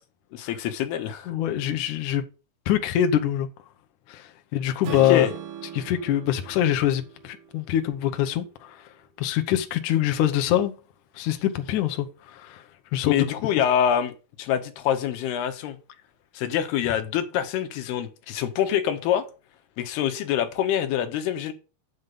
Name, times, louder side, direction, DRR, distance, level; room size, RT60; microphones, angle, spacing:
voice 1, 0.3-1.3 4.9-5.3 13.1-14.1 14.4-15.8 16.3-19.3 19.8-21.5, left 10 dB, 85° left, 3.1 m, -25 dB
voice 2, 1.3-2.2 2.7-3.5 4.1-5.3 5.7-8.8 9.2-10.7 11.2-12.6 12.9-13.2, left 11 dB, 70° left, 2.0 m, -24 dB
Strum, 4.8-9.0, right 9 dB, 80° right, 3.3 m, -40 dB
8.1 x 7.3 x 5.3 m
omnidirectional pair, 4.5 m